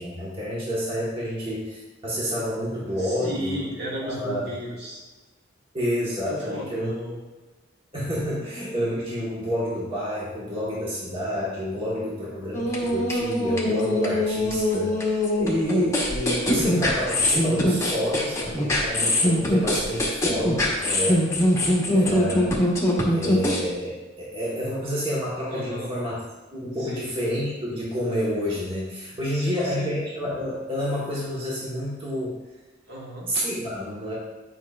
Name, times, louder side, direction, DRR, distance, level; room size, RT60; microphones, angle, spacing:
voice 1, 0.0-3.6 4.0-4.5 5.7-6.9 7.9-21.3 21.9-22.6 23.1-26.2 26.5-32.4 33.3-34.1, equal, 25° right, -7 dB, 1.3 m, -29 dB
voice 2, 2.9-5.0 6.3-7.2 24.5-24.6 25.5-25.9 26.8-27.1 29.3-29.9 32.9-33.3, equal, 55° right, -4 dB, 1.8 m, -34 dB
sound 1, 12.5-23.6, left 1 dB, 15° left, 1.1 m, -23 dB
9.1 x 5.5 x 2.4 m, 1.2 s
head